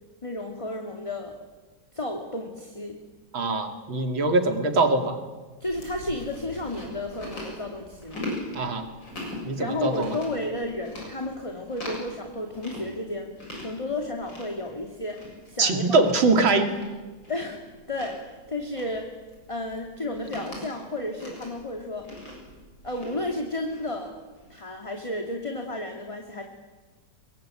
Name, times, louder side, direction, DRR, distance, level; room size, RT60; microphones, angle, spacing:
voice 1, 0.2-1.3 1.9-3.0 5.6-8.2 9.6-13.3 13.6-16.0 17.3-19.1 19.5-22.1 22.8-24.1 24.5-26.4, left 1 dB, 15° left, 3 dB, 2.3 m, -32 dB
voice 2, 3.3-5.2 8.5-8.9 9.4-10.1 15.6-16.7, right 3 dB, 70° right, 6 dB, 3.3 m, -23 dB
Chewing mastication, 5.7-24.6, left 1 dB, 60° left, 7.8 m, -41 dB
24.0 x 22.5 x 9.0 m, 1.3 s
omnidirectional pair, 2.2 m